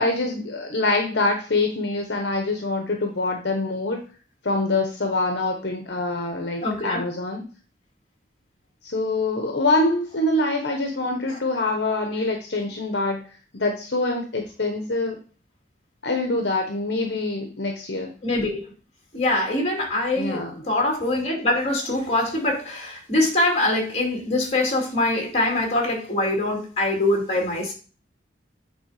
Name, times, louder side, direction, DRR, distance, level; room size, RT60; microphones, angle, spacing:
voice 1, 0.0-4.0 4.4-7.4 8.8-13.2 13.5-15.2 16.0-18.1 20.2-20.6, left 2 dB, 65° left, 3 dB, 1.0 m, -25 dB
voice 2, 6.6-7.0 18.2-18.7 19.1-27.7, left 2 dB, 35° left, 0 dB, 2.4 m, -23 dB
8.6 x 3.7 x 4.9 m, 0.38 s
head